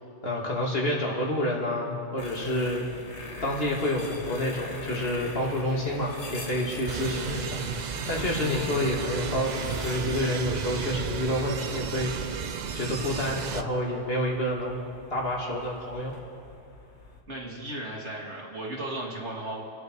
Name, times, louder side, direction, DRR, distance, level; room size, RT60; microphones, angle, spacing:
voice 1, 0.2-2.9 3.4-7.6 8.1-12.4 12.7-14.8 15.1-16.1, left 1 dB, 60° left, -2 dB, 2.8 m, -28 dB
sound 1, 2.2-17.2, left 3 dB, 80° left, 1.7 m, -43 dB
sound 2, 6.9-13.6, right 6 dB, 50° right, 0.6 m, -33 dB
voice 2, 8.4-8.7 17.3-19.6, right 1 dB, 90° right, -2 dB, 2.9 m, -36 dB
29.0 x 10.0 x 4.8 m, 2.4 s
omnidirectional pair, 1.1 m